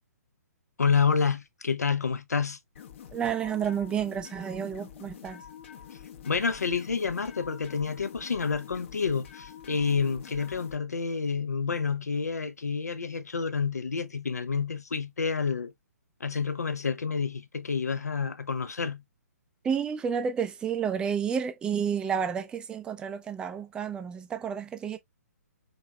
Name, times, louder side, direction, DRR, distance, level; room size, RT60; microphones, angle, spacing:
voice 1, 0.8-2.6 6.3-15.7 16.2-19.0, left 5 dB, 70° left, 0.8 m, -29 dB
sound 1, 2.7-10.8, left 9 dB, 45° left, 1.0 m, -46 dB
voice 2, 3.1-5.4 19.6-25.0, right 7 dB, 10° right, 0.5 m, -30 dB
4.1 x 4.0 x 2.3 m
figure-of-eight pair, 130°, 9 cm